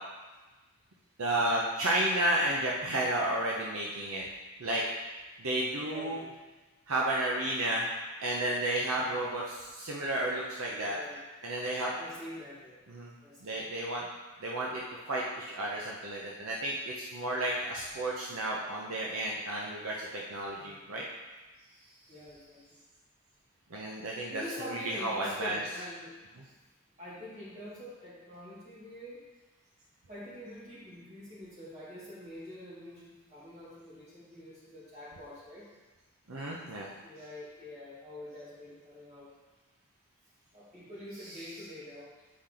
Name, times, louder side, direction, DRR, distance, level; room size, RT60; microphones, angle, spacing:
voice 1, 1.2-4.2 4.6-4.8 5.4-6.2 6.9-7.9 8.2-11.0 11.4-11.9 12.9-13.1 13.4-14.0 14.4-21.0 23.7-24.4 24.7-25.6 36.3-36.9, right 1 dB, 70° right, -3 dB, 0.8 m, -32 dB
voice 2, 5.7-6.3 9.0-9.2 10.7-11.2 12.0-12.8 13.2-13.6 20.6-20.8 22.1-22.8 24.3-26.1 27.0-29.2 30.1-35.7 37.0-39.3 40.5-42.1, left 1 dB, 30° right, -8 dB, 2.4 m, -45 dB
8.4 x 4.4 x 3.9 m, 1.2 s
head